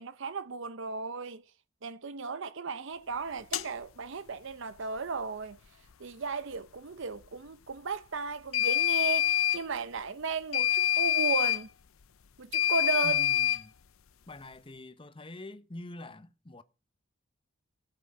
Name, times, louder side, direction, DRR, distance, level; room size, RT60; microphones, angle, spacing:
voice 1, 0.0-1.4 1.8-5.6 6.0-11.7 12.4-13.3, right 4 dB, 60° right, 0.7 m, -35 dB
sound 1, 3.5-3.7 8.5-9.6 10.5-11.6 12.5-13.6, left 11 dB, 75° left, 0.6 m, -26 dB
voice 2, 13.0-13.7 14.3-16.6, left 2 dB, 25° left, 0.9 m, -45 dB
15.5 x 7.9 x 4.8 m
head